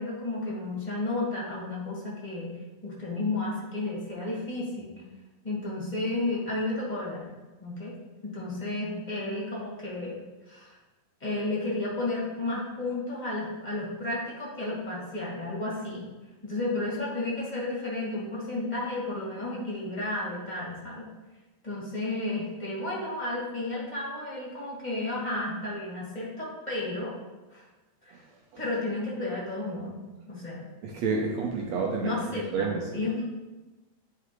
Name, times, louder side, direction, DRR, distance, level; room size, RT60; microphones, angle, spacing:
voice 1, 0.0-2.5 2.8-4.9 5.4-7.3 7.6-7.9 8.2-10.2 10.5-10.8 11.2-16.0 16.4-21.1 21.6-27.1 27.5-27.7 28.0-28.2 28.6-30.0 30.3-30.7 32.0-33.2, left 2 dB, 15° left, -6 dB, 1.9 m, -32 dB
voice 2, 30.8-32.2 32.5-32.8, right 4 dB, 75° right, 0 dB, 1.7 m, -28 dB
10.0 x 4.8 x 3.1 m, 1.1 s
omnidirectional pair, 3.7 m